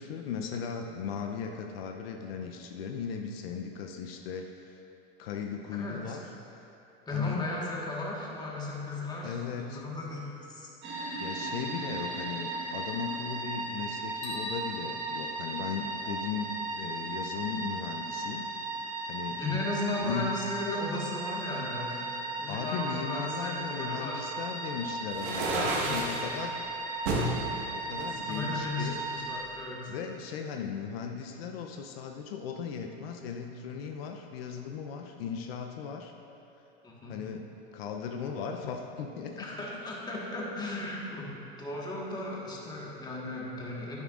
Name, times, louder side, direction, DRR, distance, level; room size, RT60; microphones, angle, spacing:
voice 1, 0.0-4.8 5.2-6.2 7.1-7.4 9.2-9.8 11.2-18.4 19.1-19.6 20.0-20.3 22.5-26.6 27.7-29.0 29.9-36.1 37.1-37.5 37.7-39.4, left 6 dB, 75° left, 3 dB, 0.7 m, -37 dB
voice 2, 5.7-6.2 7.0-10.7 19.4-24.3 25.7-26.6 28.0-29.9 36.8-37.2 39.4-44.0, left 2 dB, 15° left, -4 dB, 1.5 m, -36 dB
sound 1, 10.8-29.4, right 3 dB, 35° right, 1.6 m, -36 dB
sound 2, 14.2-16.5, equal, 50° left, 2.0 m, -44 dB
sound 3, 25.1-26.2 27.1-27.3 28.0-29.0, right 2 dB, 80° right, 1.7 m, -30 dB
10.0 x 9.2 x 2.5 m, 2.8 s
supercardioid pair, 120°, 31 cm